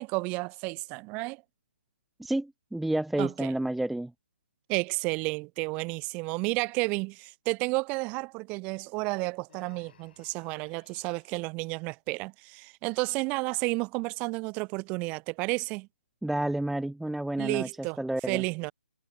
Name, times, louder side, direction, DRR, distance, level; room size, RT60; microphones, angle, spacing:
voice 1, 0.0-1.4 3.2-3.5 4.7-15.9 17.4-18.0 18.3-18.7, right 27 dB, 20° right, 1.2 m, -31 dB
voice 2, 2.2-4.1 16.2-17.7 18.0-18.4, right 1 dB, ahead, 0.6 m, -30 dB
Human voice, 9.5-11.4, left 8 dB, 50° left, 4.4 m, -60 dB
hypercardioid pair, 150°, 7 cm